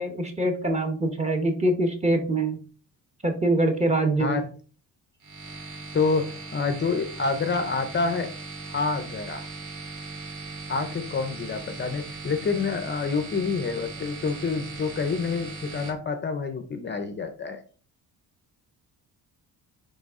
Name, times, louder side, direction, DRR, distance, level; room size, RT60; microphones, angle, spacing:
voice 1, 0.0-2.6 3.2-4.4, right 1 dB, 15° right, 4 dB, 1.0 m, -24 dB
sound 1, 5.2-15.9, right 3 dB, 80° right, 2.0 m, -38 dB
voice 2, 6.5-8.3 8.7-9.4 10.7-17.6, left 4 dB, 30° left, 7 dB, 0.6 m, -27 dB
9.5 x 3.4 x 3.6 m, 0.40 s
wide cardioid pair, 175°, 38 cm